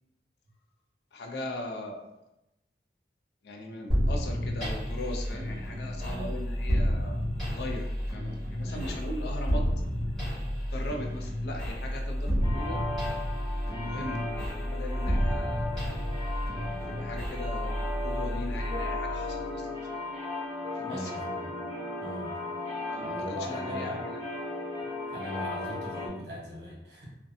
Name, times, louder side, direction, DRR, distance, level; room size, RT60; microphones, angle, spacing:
voice 1, 1.1-2.1 3.4-9.7 10.7-12.8 13.6-15.8 16.9-19.8 20.7-21.1 22.9-24.2, left 1 dB, 65° left, 2 dB, 0.4 m, -39 dB
sound 1, 3.9-19.5, equal, ahead, 1.3 m, -31 dB
voice 2, 6.0-6.3 8.6-9.3 20.8-21.6 22.0-22.4 23.0-24.0 25.1-27.0, equal, 65° right, -5 dB, 1.0 m, -39 dB
sound 2, 12.4-26.1, left 2 dB, 20° right, 0.9 m, -36 dB
2.6 x 2.1 x 2.6 m, 0.91 s
head